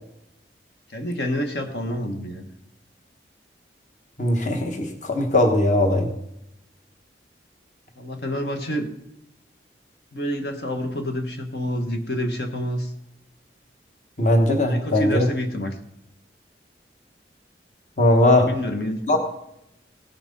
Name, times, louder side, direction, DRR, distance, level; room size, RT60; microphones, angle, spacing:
voice 1, 0.9-2.5 8.0-8.9 10.1-12.9 14.6-15.8 18.2-19.2, equal, 70° left, 4 dB, 1.4 m, -28 dB
voice 2, 4.2-6.1 14.2-15.3 18.0-18.5 19.1-19.2, left 1 dB, 45° left, 4 dB, 1.3 m, -19 dB
17.5 x 6.0 x 5.4 m, 0.82 s
head